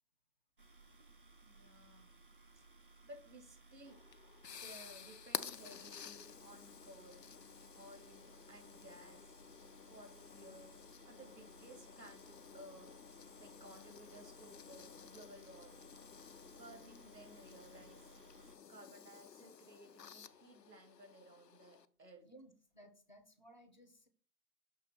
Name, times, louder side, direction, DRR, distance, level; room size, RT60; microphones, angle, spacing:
sound 1, 0.6-18.6, right 3 dB, 35° right, 0.4 m, -62 dB
voice 1, 1.4-2.1 2.5-4.0 4.4-7.3 7.7-9.3 9.8-10.7 11.1-16.0 16.5-18.1 18.7-22.3, right 1 dB, 85° right, 4 dB, 2.5 m, -58 dB
sound 2, 3.9-21.9, left 8 dB, 80° left, 0.6 m, -52 dB
voice 2, 22.2-24.1, right 1 dB, 30° left, 7 dB, 0.5 m, -60 dB
6.6 x 3.2 x 5.7 m, 0.43 s
figure-of-eight pair, 140°, 49 cm